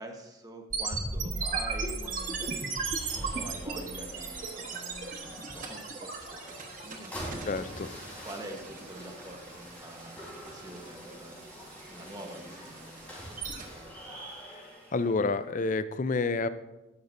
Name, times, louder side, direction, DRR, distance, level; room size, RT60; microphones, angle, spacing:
voice 1, 0.0-7.5 8.2-11.5 11.9-14.0, right 1 dB, 20° right, 3 dB, 1.1 m, -46 dB
sound 1, 0.7-13.7, right 4 dB, 40° right, 1.2 m, -37 dB
sound 2, 1.2-15.3, equal, 10° left, 3.8 m, -46 dB
sound 3, 1.3-3.1 4.1-5.9, left 1 dB, 80° right, 3.6 m, -55 dB
voice 2, 7.5-8.3 14.5-14.6 14.9-16.5, left 3 dB, 40° left, 13 dB, 0.4 m, -29 dB
12.0 x 12.0 x 2.6 m, 1.0 s
head